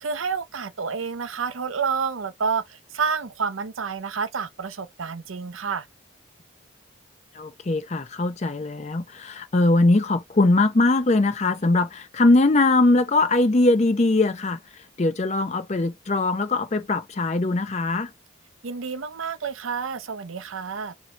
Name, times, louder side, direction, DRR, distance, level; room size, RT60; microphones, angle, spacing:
voice 1, 0.0-5.9 18.6-20.9, right 5 dB, 80° right, 0.7 m, -29 dB
voice 2, 7.4-14.6 15.0-18.1, left 2 dB, 35° left, 0.5 m, -21 dB
4.0 x 2.7 x 3.1 m
head